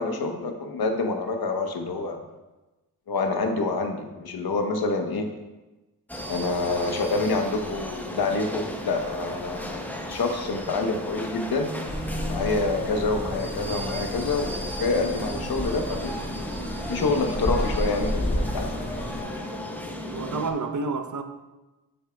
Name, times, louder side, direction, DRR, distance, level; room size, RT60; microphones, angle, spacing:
voice 1, 0.0-2.2 3.1-5.3 6.3-11.7 12.3-16.2 16.9-18.7, left 3 dB, 65° left, 4 dB, 1.1 m, -27 dB
sound 1, 6.1-20.5, equal, 5° left, 0.9 m, -35 dB
sound 2, 11.9-19.2, equal, 25° left, 1.3 m, -31 dB
voice 2, 20.0-21.2, right 4 dB, 50° right, 7 dB, 0.8 m, -29 dB
7.6 x 6.6 x 2.3 m, 1.1 s
cardioid pair, 50°, 40 cm